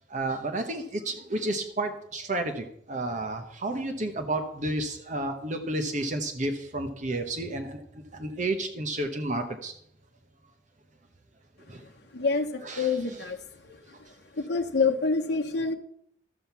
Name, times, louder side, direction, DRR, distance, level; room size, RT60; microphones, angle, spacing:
voice 1, 0.1-9.7 11.7-11.9 12.6-13.2, right 2 dB, 45° right, 5 dB, 1.0 m, -31 dB
voice 2, 12.1-13.4 14.4-15.7, left 4 dB, 65° left, 3 dB, 0.9 m, -26 dB
12.5 x 7.7 x 5.7 m, 0.71 s
head